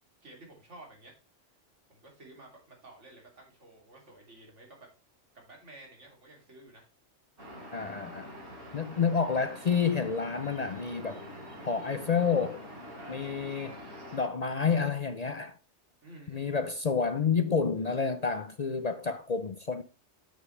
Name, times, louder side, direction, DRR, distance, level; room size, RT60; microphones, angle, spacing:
voice 1, 0.2-1.1 1.9-4.9 5.3-6.9 9.0-9.1 13.0-13.5 16.0-16.6, right 2 dB, 80° right, 3.2 m, -52 dB
sound 1, 7.4-14.3, equal, 65° right, 3.9 m, -45 dB
voice 2, 7.7-8.3 8.7-11.2 11.6-12.6 13.1-13.7 14.1-15.6 16.3-19.8, left 5 dB, 45° left, 0.6 m, -29 dB
8.5 x 7.6 x 3.2 m
omnidirectional pair, 1.2 m